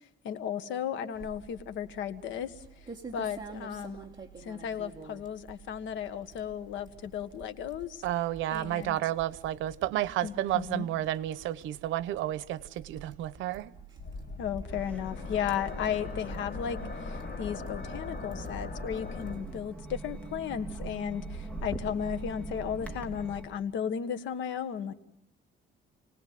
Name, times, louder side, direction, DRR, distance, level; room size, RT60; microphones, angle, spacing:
voice 1, 0.2-2.5 3.1-4.0 4.4-8.0 8.5-9.0 10.2-10.9 14.4-24.9, left 8 dB, 80° left, 10 dB, 1.6 m, -35 dB
sound 1, 1.1-20.3, right 4 dB, 20° right, 2.6 m, -50 dB
voice 2, 8.0-13.7, right 13 dB, 85° right, 17 dB, 0.9 m, -31 dB
sound 2, 14.0-19.4, left 3 dB, 55° left, 6.5 m, -39 dB
sound 3, 14.7-23.5, right 2 dB, 5° left, 2.7 m, -42 dB
29.0 x 19.0 x 7.7 m, 0.76 s
cardioid pair, 140°, 19 cm